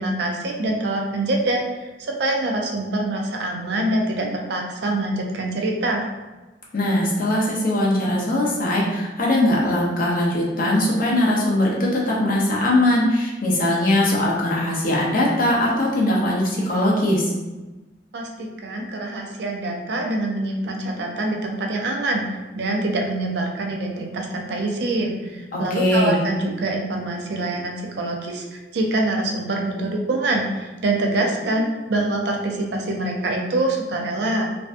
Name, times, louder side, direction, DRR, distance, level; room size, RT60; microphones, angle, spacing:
voice 1, 0.0-6.0 18.1-22.3 22.6-34.5, right 2 dB, 65° right, 1 dB, 0.4 m, -25 dB
voice 2, 6.7-17.3 25.5-26.2, left 1 dB, 50° left, -4 dB, 0.6 m, -20 dB
2.5 x 2.2 x 2.5 m, 1.1 s
head